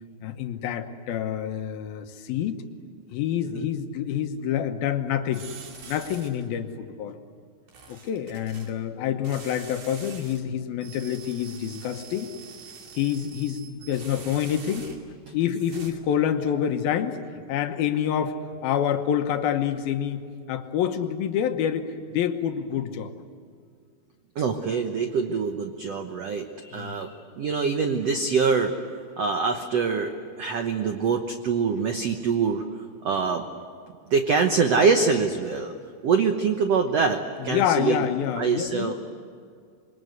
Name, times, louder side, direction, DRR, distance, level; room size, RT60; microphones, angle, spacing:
voice 1, 0.2-2.6 3.1-5.5 5.9-7.2 7.9-12.3 12.9-14.9 15.3-17.2 17.5-23.1 26.7-27.1 37.4-38.9, left 9 dB, 75° left, 7 dB, 2.8 m, -27 dB
sound 1, 5.3-6.5 7.7-8.7 9.2-10.4 10.8-15.2 15.5-15.9, right 5 dB, 50° right, 3.6 m, -45 dB
voice 2, 24.3-28.8 29.2-32.6 33.0-33.5 34.1-35.7 36.0-38.1 38.4-38.9, right 5 dB, 80° right, 5 dB, 1.4 m, -24 dB
27.0 x 22.5 x 8.1 m, 2.2 s
omnidirectional pair, 4.6 m